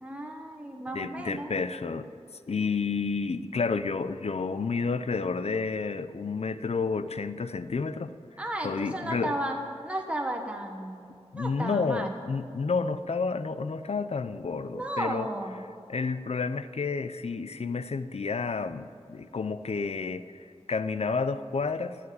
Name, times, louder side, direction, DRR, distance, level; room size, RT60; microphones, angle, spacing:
voice 1, 0.0-1.5 8.4-9.6 9.8-12.1 14.7-15.5, right 1 dB, 10° right, 2 dB, 1.3 m, -34 dB
voice 2, 0.9-2.1 2.5-8.1 8.6-9.4 11.3-15.3 15.9-22.0, left 4 dB, 65° left, 12 dB, 0.6 m, -30 dB
12.5 x 7.5 x 9.3 m, 2.5 s
wide cardioid pair, 70°, 12 cm